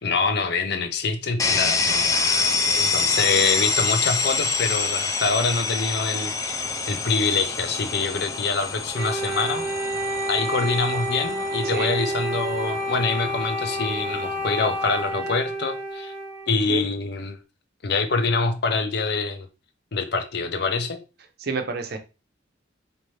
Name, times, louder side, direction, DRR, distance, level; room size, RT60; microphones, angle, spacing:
voice 1, 0.0-2.1 2.9-6.6 6.9-9.6 10.3-16.1 16.5-17.4 17.8-19.5 19.9-21.0, left 4 dB, 55° left, 0.6 m, -25 dB
sound 1, 1.4-15.1, left 4 dB, 15° left, 0.3 m, -27 dB
voice 2, 2.1-2.9 11.6-11.9 16.7-16.9 21.4-22.0, right 4 dB, 55° right, 0.6 m, -31 dB
Wind instrument woodwind instrument, 8.9-16.7, right 1 dB, 10° right, 0.6 m, -29 dB
4.3 x 2.6 x 3.2 m
head